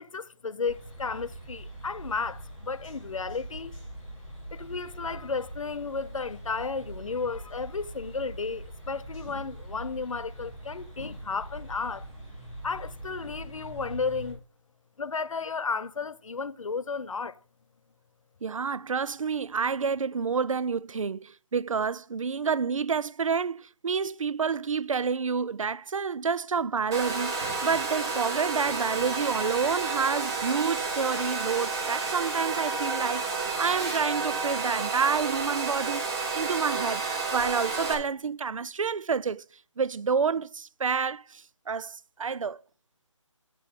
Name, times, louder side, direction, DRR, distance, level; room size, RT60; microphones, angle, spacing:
voice 1, 0.0-3.7 4.5-12.1 12.6-14.4 15.0-17.4, left 4 dB, 80° left, 0.7 m, -33 dB
sound 1, 0.6-14.3, right 1 dB, 15° left, 4.6 m, -43 dB
voice 2, 18.4-33.3 33.6-36.0 36.3-37.0 37.3-39.4 39.8-42.6, right 5 dB, 80° right, 0.5 m, -29 dB
Domestic sounds home sounds, 26.9-37.9, right 4 dB, 10° right, 0.6 m, -30 dB
9.7 x 7.5 x 3.7 m
figure-of-eight pair, 170°, 17 cm